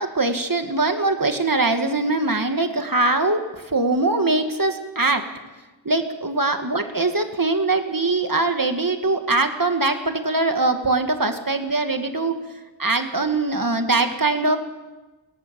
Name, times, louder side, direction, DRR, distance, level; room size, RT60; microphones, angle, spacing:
voice 1, 0.0-5.2 5.8-12.4 12.8-14.6, right 3 dB, 45° right, 6 dB, 2.2 m, -22 dB
22.5 x 18.0 x 7.2 m, 1.2 s
wide cardioid pair, 40°, 45 cm